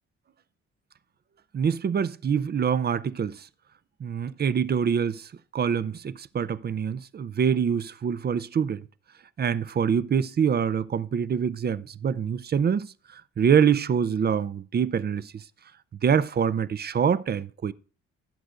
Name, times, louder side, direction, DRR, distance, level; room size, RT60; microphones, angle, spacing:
voice 1, 1.5-3.5 4.0-8.8 9.4-12.9 13.4-15.4 16.0-17.7, right 7 dB, 35° right, 0.5 m, -25 dB
16.5 x 7.8 x 2.5 m
cardioid pair, 90°, 30 cm